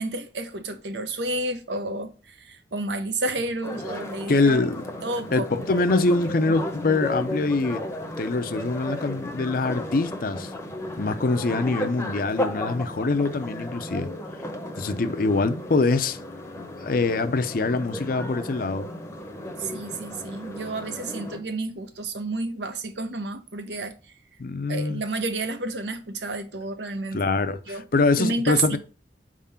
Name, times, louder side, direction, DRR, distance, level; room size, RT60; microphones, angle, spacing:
voice 1, 0.0-4.7 5.0-5.5 19.6-23.9 24.7-27.2 27.7-27.8 28.2-28.8, right 2 dB, 75° right, 0.8 m, -30 dB
sound 1, 3.6-21.4, left 1 dB, 15° left, 0.8 m, -34 dB
voice 2, 4.3-4.9 5.3-7.8 8.2-10.5 11.0-14.1 14.8-16.2 16.8-18.9 24.4-25.0 27.1-28.8, left 3 dB, 50° left, 0.5 m, -24 dB
4.7 x 3.7 x 5.6 m
head